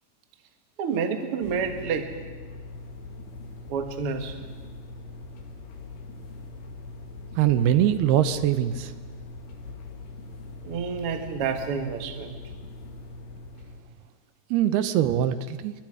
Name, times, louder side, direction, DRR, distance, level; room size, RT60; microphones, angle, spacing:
voice 1, 0.8-2.1 3.7-4.4 10.6-12.3, right 6 dB, 50° right, 6 dB, 1.9 m, -29 dB
sound 1, 1.4-13.8, left 2 dB, 85° left, 4.3 m, -42 dB
voice 2, 7.4-8.9 14.5-15.7, right 11 dB, 80° right, 12 dB, 2.8 m, -22 dB
29.5 x 23.5 x 4.9 m, 1.5 s
omnidirectional pair, 4.5 m